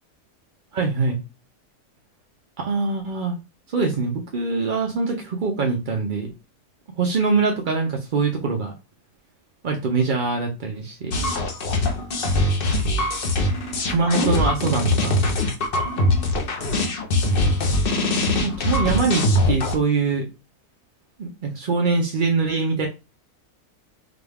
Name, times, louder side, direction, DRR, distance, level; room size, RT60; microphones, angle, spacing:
voice 1, 0.7-1.2 2.6-3.4 3.7-6.3 7.0-8.7 9.6-11.2 13.9-15.2 18.4-20.3 21.2-22.9, right 4 dB, 55° right, 2 dB, 0.5 m, -23 dB
sound 1, 11.1-19.7, left 1 dB, 50° left, 0.8 m, -22 dB
4.9 x 2.3 x 3.4 m, 0.28 s
omnidirectional pair, 1.6 m